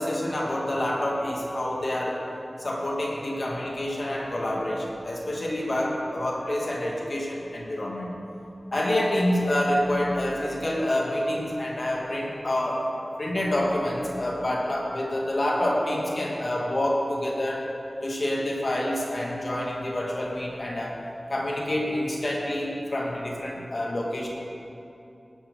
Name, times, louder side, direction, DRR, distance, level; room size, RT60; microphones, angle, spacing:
voice 1, 0.0-2.3 2.6-8.2 8.7-12.9 13.2-17.7 18.0-21.0 21.3-24.3, left 1 dB, 60° left, -2 dB, 2.4 m, -27 dB
17.5 x 9.0 x 4.1 m, 2.8 s
cardioid pair, 45°, 0 cm